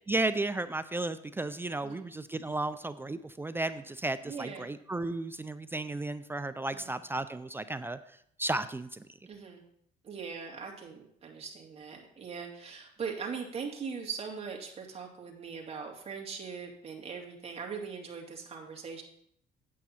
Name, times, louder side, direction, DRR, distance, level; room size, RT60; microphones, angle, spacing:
voice 1, 0.1-8.0 8.4-9.0, right 2 dB, 15° right, 12 dB, 0.4 m, -34 dB
voice 2, 4.2-4.7 6.7-6.9 9.3-9.7 10.0-19.0, right 6 dB, 35° right, 0 dB, 2.3 m, -40 dB
9.0 x 8.6 x 4.3 m, 0.69 s
cardioid pair, 110°, 17 cm